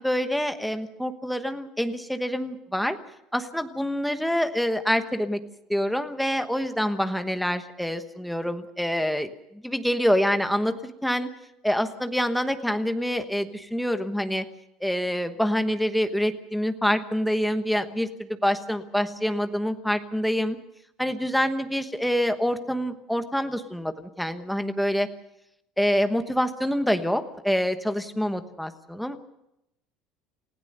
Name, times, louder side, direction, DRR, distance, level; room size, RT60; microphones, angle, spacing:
voice 1, 0.0-3.0 3.3-5.4 5.7-11.3 11.6-14.4 14.8-20.6 21.0-25.1 25.8-29.2, equal, ahead, 7 dB, 1.1 m, -26 dB
29.0 x 16.0 x 6.7 m, 0.84 s
cardioid pair, 180°, 0 cm